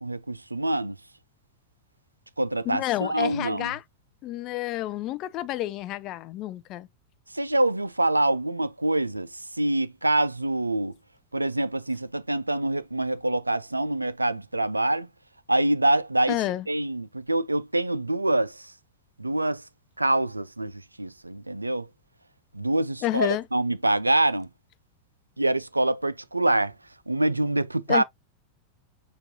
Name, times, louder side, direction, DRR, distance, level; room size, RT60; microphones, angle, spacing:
voice 1, 0.0-1.0 2.4-3.7 7.3-10.9 11.3-15.1 15.5-16.4 16.7-18.7 19.2-19.6 20.0-20.7 21.0-21.9 22.5-24.5 25.4-26.7 27.1-28.0, right 1 dB, 85° right, 0.3 m, -25 dB
voice 2, 2.6-3.8 4.2-6.9 16.3-16.7 23.0-23.5 27.9-28.0, left 15 dB, 35° left, 0.4 m, -29 dB
6.6 x 2.4 x 2.7 m
figure-of-eight pair, 90°, 0 cm